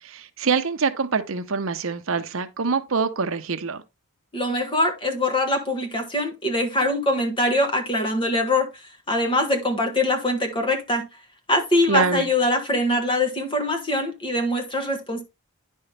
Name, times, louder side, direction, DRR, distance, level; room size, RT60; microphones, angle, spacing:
voice 1, 0.0-3.8 11.9-12.3, right 4 dB, 70° right, 0.8 m, -25 dB
voice 2, 4.3-8.8 9.1-11.0 11.5-15.2, left 1 dB, 25° left, 1.4 m, -23 dB
10.0 x 5.5 x 3.3 m
head